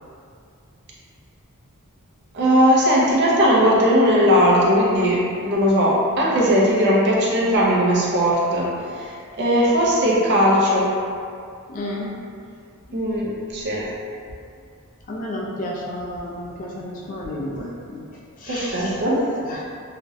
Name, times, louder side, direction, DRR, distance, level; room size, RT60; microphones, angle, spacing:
voice 1, 2.3-9.1 9.4-10.9 12.9-13.9 18.5-19.3, equal, 50° right, -5 dB, 0.5 m, -18 dB
voice 2, 11.7-12.1 15.1-19.6, left 1 dB, 35° left, -3 dB, 0.3 m, -32 dB
2.4 x 2.0 x 2.6 m, 2.3 s
head